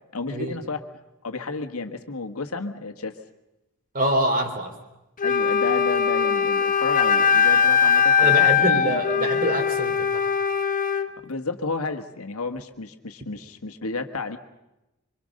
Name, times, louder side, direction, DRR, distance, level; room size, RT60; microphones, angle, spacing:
voice 1, 0.1-0.8 1.2-3.2 5.2-9.5 11.2-14.4, left 3 dB, 80° left, 7 dB, 1.7 m, -32 dB
voice 2, 3.9-4.7 8.2-10.3, right 1 dB, 40° right, 4 dB, 3.7 m, -25 dB
Wind instrument woodwind instrument, 5.2-11.1, left 7 dB, 40° left, 1.2 m, -20 dB
25.5 x 24.5 x 6.6 m, 0.96 s
head